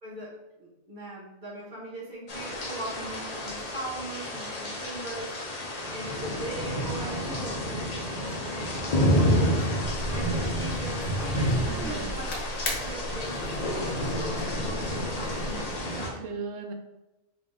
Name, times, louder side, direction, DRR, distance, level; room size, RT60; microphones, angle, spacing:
voice 1, 0.0-7.8 8.1-9.6 10.1-16.3, right 1 dB, 40° right, -5 dB, 1.2 m, -40 dB
sound 1, 2.3-16.1, equal, 40° left, 0.6 m, -29 dB
voice 2, 6.7-7.5 11.7-12.2 15.9-16.7, right 5 dB, 80° right, 4 dB, 1.0 m, -39 dB
sound 2, 9.8-15.8, left 1 dB, 80° left, 1.2 m, -37 dB
3.5 x 2.7 x 3.6 m, 1.0 s
omnidirectional pair, 1.4 m